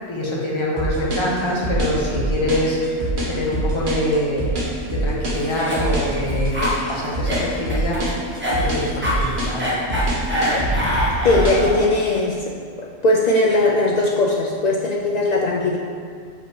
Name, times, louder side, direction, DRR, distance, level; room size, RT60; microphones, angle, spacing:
voice 1, 0.1-4.5 4.9-8.0 8.5-9.7, left 1 dB, 25° left, -4 dB, 1.0 m, -24 dB
sound 1, 0.8-11.7, right 1 dB, 45° right, 1.2 m, -24 dB
Cough, 5.3-11.9, left 1 dB, 10° right, 1.1 m, -25 dB
voice 2, 11.2-12.5 12.8-15.8, left 2 dB, 60° left, -1 dB, 0.4 m, -19 dB
6.4 x 4.9 x 3.2 m, 2.1 s
omnidirectional pair, 1.2 m